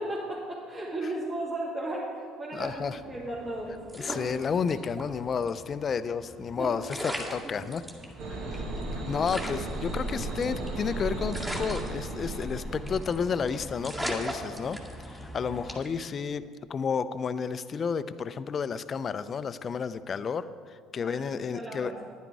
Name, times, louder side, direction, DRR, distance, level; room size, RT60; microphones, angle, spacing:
voice 1, 0.0-3.8 6.6-7.1 7.4-7.5 21.0-22.0, right 1 dB, 35° right, -7 dB, 2.6 m, -35 dB
voice 2, 2.5-3.0 3.9-7.8 8.3-14.8 15.0-16.4 16.7-21.9, left 6 dB, 40° left, 14 dB, 0.5 m, -31 dB
sound 1, 2.6-15.8, equal, ahead, 2.1 m, -46 dB
sound 2, 3.9-5.1 5.4-5.5 6.5-6.6 6.9-8.0 8.5-8.6 8.8-8.9 9.3-10.8 11.3-12.6 12.9-13.2 13.5-13.6 13.8-15.2 15.7-16.0, equal, 15° right, 2.0 m, -36 dB
sound 3, 8.2-13.5, right 2 dB, 70° right, 1.5 m, -35 dB
10.5 x 9.7 x 4.7 m, 2.1 s
supercardioid pair, 80°, 0 cm